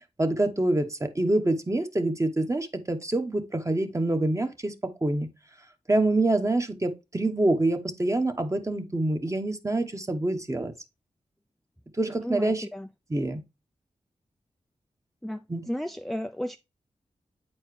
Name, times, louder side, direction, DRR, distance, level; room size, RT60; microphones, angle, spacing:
voice 1, 0.2-4.7 5.0-5.3 5.9-10.7 12.0-12.7 13.1-13.4 15.5-15.6, right 2 dB, 25° right, 1.1 m, -26 dB
voice 2, 12.2-12.9 15.2-15.4 15.7-16.6, equal, ahead, 0.3 m, -33 dB
8.4 x 4.5 x 3.2 m
cardioid pair, 50°, 13 cm